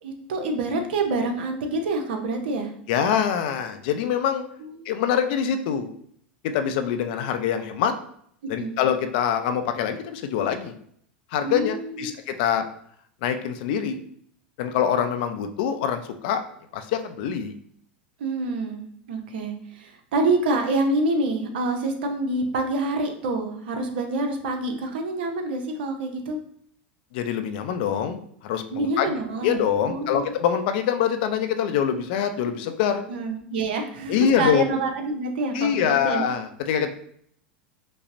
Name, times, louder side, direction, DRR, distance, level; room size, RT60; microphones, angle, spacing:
voice 1, 0.0-2.7 4.8-4.9 8.6-8.7 11.4-12.1 18.2-26.4 28.7-30.2 33.1-36.2, right 2 dB, 70° right, 4 dB, 0.6 m, -27 dB
voice 2, 2.9-4.4 4.9-5.9 6.4-7.9 8.5-10.7 11.3-12.6 13.2-14.0 14.6-16.4 16.7-17.5 27.1-29.1 29.4-33.0 34.1-34.6 35.5-36.9, left 8 dB, 60° left, 8 dB, 0.4 m, -24 dB
5.2 x 2.0 x 2.6 m, 0.66 s
hypercardioid pair, 90°, 6 cm